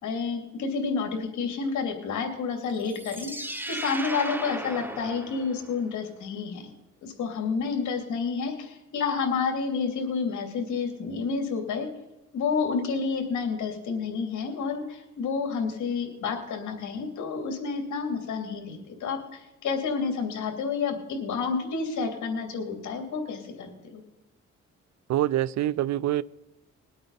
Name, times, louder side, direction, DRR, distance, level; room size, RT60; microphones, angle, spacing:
voice 1, 0.0-3.3 3.7-6.7 7.0-11.9 12.3-24.0, left 5 dB, 75° left, 2.9 m, -30 dB
sound 1, 2.8-5.9, right 1 dB, 5° right, 1.2 m, -36 dB
voice 2, 25.1-26.2, right 13 dB, 65° right, 0.5 m, -25 dB
21.5 x 8.7 x 4.1 m
cardioid pair, 90°, 30 cm